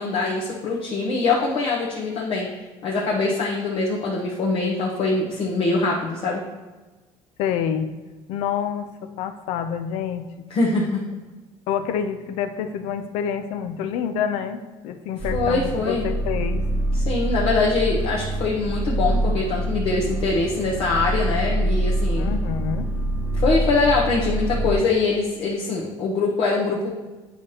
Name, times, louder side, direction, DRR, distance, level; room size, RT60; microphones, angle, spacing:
voice 1, 0.0-2.5 2.8-6.4 10.5-11.0 15.3-16.0 16.9-22.3 23.4-26.9, left 3 dB, 55° left, -4 dB, 1.0 m, -23 dB
voice 2, 7.4-7.9 8.3-10.5 11.7-16.7 22.2-22.9, left 8 dB, 80° left, 9 dB, 0.6 m, -27 dB
sound 1, 15.2-24.7, right 1 dB, 10° right, 1.0 m, -25 dB
8.9 x 5.0 x 2.8 m, 1.2 s
cardioid pair, 135°, 11 cm